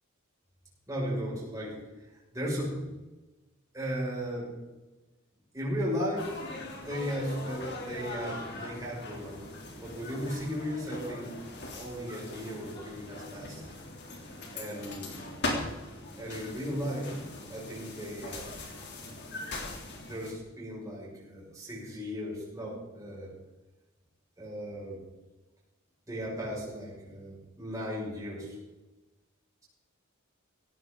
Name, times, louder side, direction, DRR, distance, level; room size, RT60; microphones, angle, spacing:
voice 1, 0.9-2.8 3.7-4.5 5.5-6.3 6.7-9.4 9.8-11.4 11.8-13.7 14.5-15.2 16.2-17.2 17.5-18.5 20.0-23.3 24.4-25.0 26.1-28.6, equal, 15° right, -7 dB, 6.4 m, -36 dB
sound 1, 6.2-20.3, left 2 dB, 55° left, 3.3 m, -40 dB
17.0 x 14.5 x 4.0 m, 1.1 s
head